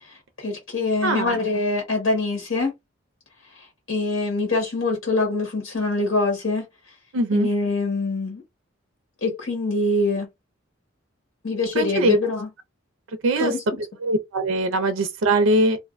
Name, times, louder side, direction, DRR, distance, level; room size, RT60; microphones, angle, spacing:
voice 1, 0.0-2.7 3.5-6.7 7.3-8.4 9.2-10.3 11.4-12.5 13.4-13.6, left 2 dB, 75° left, 1.0 m, -24 dB
voice 2, 1.0-1.4 7.1-7.5 11.7-12.2 13.2-13.5 14.0-15.8, right 2 dB, 80° right, 0.5 m, -21 dB
2.5 x 2.1 x 2.4 m
head